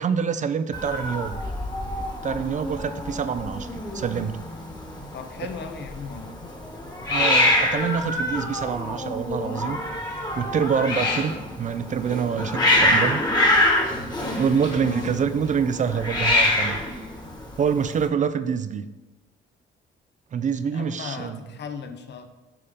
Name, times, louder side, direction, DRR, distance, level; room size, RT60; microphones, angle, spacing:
voice 1, 0.0-1.4 2.2-4.4 7.1-9.8 10.4-13.2 14.4-16.8 17.6-18.8 20.3-21.4, right 7 dB, 40° right, 12 dB, 0.4 m, -26 dB
Hiss, 0.7-18.1, left 1 dB, 20° left, 1.4 m, -25 dB
voice 2, 5.1-6.4 11.0-11.4 14.8-15.1 20.7-22.3, left 5 dB, 60° left, 7 dB, 0.8 m, -36 dB
6.8 x 3.6 x 5.2 m, 1.1 s
cardioid pair, 90°, 20 cm